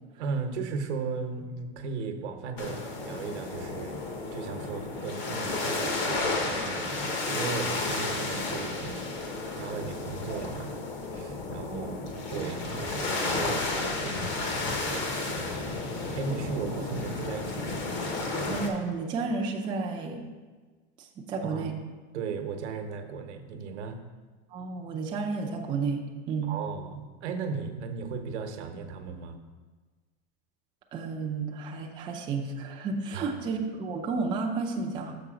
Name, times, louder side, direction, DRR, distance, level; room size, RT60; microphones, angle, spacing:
voice 1, 0.2-4.0 4.3-9.3 9.6-10.8 11.1-11.9 12.3-15.8 16.1-17.9 21.4-21.7 22.1-24.0 26.4-29.4 33.1-33.3, right 5 dB, 85° right, 6 dB, 0.9 m, -36 dB
sound 1, 2.6-18.7, left 3 dB, 35° left, 0.9 m, -32 dB
voice 2, 18.5-20.2 21.2-21.7 24.5-26.6 30.9-35.1, right 4 dB, 15° right, 0 dB, 0.4 m, -32 dB
6.9 x 4.7 x 4.9 m, 1.4 s
supercardioid pair, 155°, 33 cm